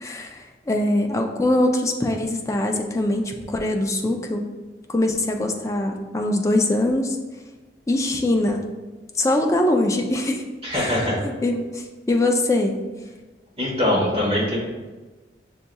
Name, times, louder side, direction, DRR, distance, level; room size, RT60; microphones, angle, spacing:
voice 1, 0.0-4.5 4.9-7.2 7.9-8.7 9.2-10.4 10.7-10.9 11.4-12.8, left 1 dB, 20° left, 3 dB, 0.3 m, -22 dB
voice 2, 10.6-11.2 13.6-14.6, left 1 dB, 35° right, -5 dB, 1.2 m, -22 dB
6.3 x 2.7 x 2.3 m, 1.2 s
head